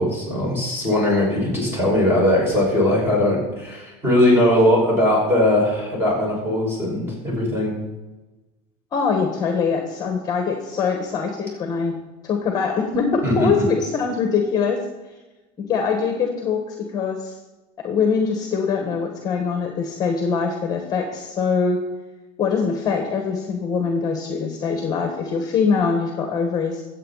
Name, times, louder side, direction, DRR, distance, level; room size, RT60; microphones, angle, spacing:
voice 1, 0.0-7.8 13.2-13.7, left 1 dB, 15° right, -3 dB, 5.6 m, -20 dB
voice 2, 8.9-12.0 12.2-14.8 15.6-17.4 17.8-21.8 22.4-26.8, left 5 dB, 25° left, 4 dB, 1.5 m, -23 dB
22.0 x 8.2 x 4.1 m, 1.1 s
cardioid pair, 170°, 15 cm